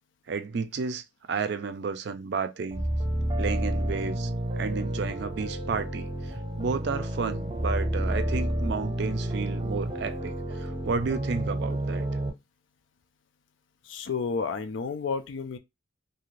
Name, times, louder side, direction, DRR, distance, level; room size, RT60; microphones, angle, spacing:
voice 1, 0.3-2.8 3.4-4.3 4.6-12.0, right 5 dB, 60° right, 0.4 m, -32 dB
sound 1, 2.7-12.3, right 1 dB, 20° right, 0.8 m, -30 dB
voice 2, 13.8-15.6, left 5 dB, 75° left, 0.4 m, -31 dB
2.7 x 2.4 x 3.1 m
head